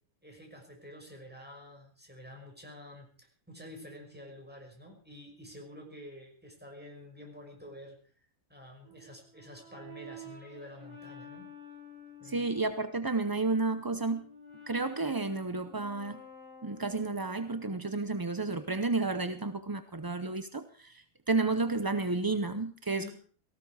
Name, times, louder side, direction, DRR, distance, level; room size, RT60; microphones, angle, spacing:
voice 1, 0.2-8.0 8.5-11.5 12.2-12.4 23.0-23.1, left 1 dB, 5° right, 1 dB, 5.7 m, -49 dB
Brass instrument, 8.8-12.8 13.3-17.4, left 1 dB, 65° right, 7.7 m, -51 dB
voice 2, 12.2-14.3 14.7-16.2 16.6-23.1, right 3 dB, 25° right, 10 dB, 0.5 m, -31 dB
18.5 x 15.5 x 4.8 m, 0.44 s
omnidirectional pair, 1.5 m